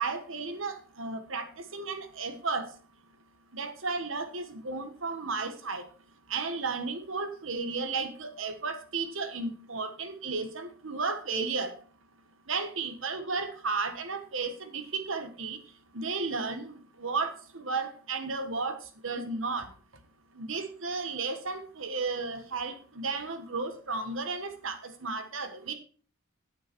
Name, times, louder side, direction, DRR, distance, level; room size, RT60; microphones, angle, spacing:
voice 1, 0.0-2.7 3.5-5.9 6.3-11.8 12.5-15.6 15.9-18.8 19.0-19.7 20.3-25.7, right 4 dB, 70° right, 7 dB, 1.5 m, -33 dB
8.7 x 7.9 x 4.6 m, 0.41 s
head